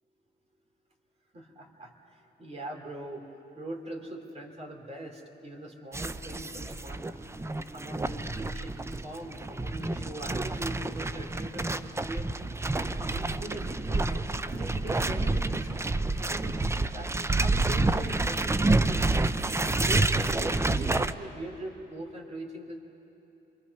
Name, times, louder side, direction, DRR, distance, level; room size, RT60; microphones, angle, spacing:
voice 1, 1.3-3.2 3.5-7.1 7.7-12.3 12.8-15.7 16.0-19.0 19.6-22.8, right 1 dB, 30° right, 1 dB, 3.4 m, -41 dB
sound 1, 5.9-21.1, right 2 dB, 15° right, 0.6 m, -28 dB
28.5 x 23.0 x 5.6 m, 3.0 s
cardioid pair, 90°, 20 cm